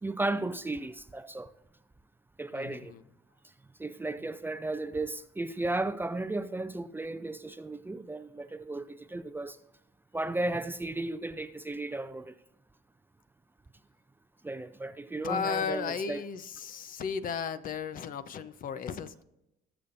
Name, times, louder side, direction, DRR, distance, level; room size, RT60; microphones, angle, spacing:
voice 1, 0.0-1.5 2.4-2.9 3.8-9.6 10.1-12.3 14.4-16.2, right 2 dB, 10° right, 0.5 m, -34 dB
voice 2, 2.5-3.0 15.2-19.2, left 6 dB, 55° left, 0.8 m, -35 dB
20.0 x 7.0 x 2.6 m
cardioid pair, 110°, 17 cm